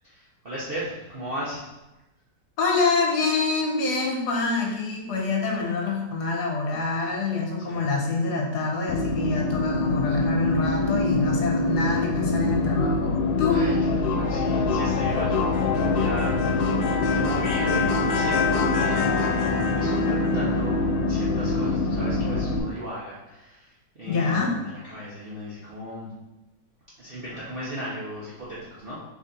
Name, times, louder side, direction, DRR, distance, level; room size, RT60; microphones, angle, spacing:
voice 1, 0.0-1.7 7.7-7.9 13.5-13.7 14.0-26.1 27.0-29.0, equal, 50° right, -8 dB, 0.7 m, -36 dB
voice 2, 2.6-13.6 24.1-24.5, left 3 dB, 65° left, 0 dB, 1.3 m, -26 dB
sound 1, 8.9-22.6, left 3 dB, 85° left, 1.3 m, -24 dB
4.1 x 3.4 x 3.8 m, 1.0 s
omnidirectional pair, 2.0 m